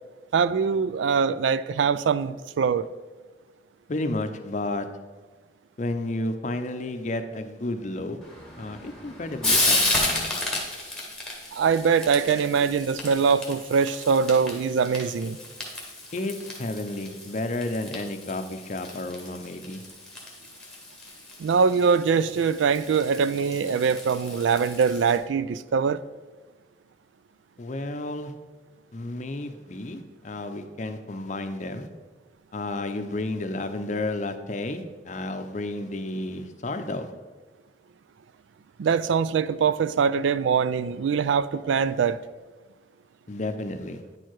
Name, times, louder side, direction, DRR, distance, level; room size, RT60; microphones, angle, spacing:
voice 1, 0.3-2.9 11.5-15.4 21.4-26.0 38.8-42.2, right 6 dB, 80° right, 0.3 m, -23 dB
voice 2, 3.9-4.9 5.8-8.2 8.6-10.4 16.1-19.8 27.6-28.3 28.9-31.9 32.5-37.1 43.3-44.0, left 2 dB, 40° left, 0.6 m, -32 dB
Frying (food), 8.2-25.2, left 2 dB, 5° left, 1.4 m, -32 dB
9.6 x 4.6 x 4.6 m
head